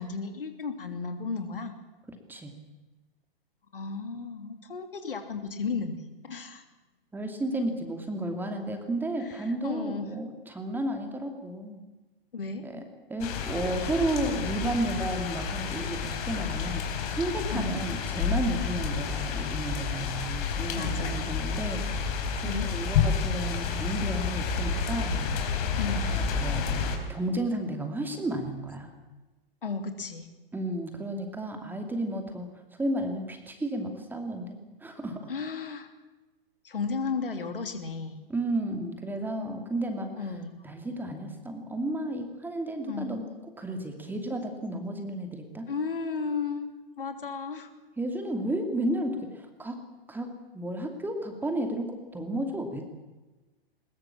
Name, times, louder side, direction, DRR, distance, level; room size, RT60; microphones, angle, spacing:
voice 1, 0.0-1.7 3.7-6.6 9.2-10.1 12.3-12.7 17.5-17.8 20.8-21.2 22.4-22.7 25.8-26.1 29.6-30.3 35.3-35.9 36.6-38.2 40.2-40.6 42.9-43.2 45.7-47.7, left 4 dB, 65° left, 7 dB, 3.1 m, -34 dB
voice 2, 2.1-2.5 7.1-11.8 12.6-12.8 13.1-25.6 25.9-28.9 30.5-32.5 32.8-35.2 38.3-40.1 40.6-43.2 43.6-45.7 48.0-49.8 50.1-52.9, right 1 dB, 5° right, 5 dB, 2.7 m, -33 dB
sound 1, 13.2-27.0, left 6 dB, 40° left, 4.0 m, -30 dB
22.0 x 21.0 x 7.5 m, 1.1 s
figure-of-eight pair, 110°, 29 cm